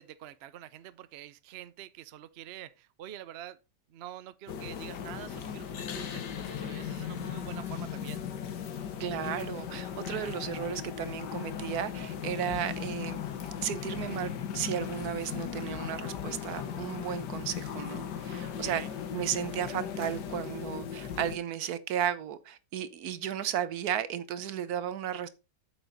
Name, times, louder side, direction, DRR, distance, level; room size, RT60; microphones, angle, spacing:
voice 1, 0.0-3.6 3.9-8.2 18.6-18.9, right 12 dB, 80° right, 0.5 m, -46 dB
sound 1, 4.5-21.4, left 8 dB, 75° left, 1.7 m, -37 dB
voice 2, 9.0-13.2 13.6-18.8 19.1-25.3, right 10 dB, 65° right, 1.3 m, -34 dB
8.8 x 6.6 x 4.0 m
omnidirectional pair, 1.8 m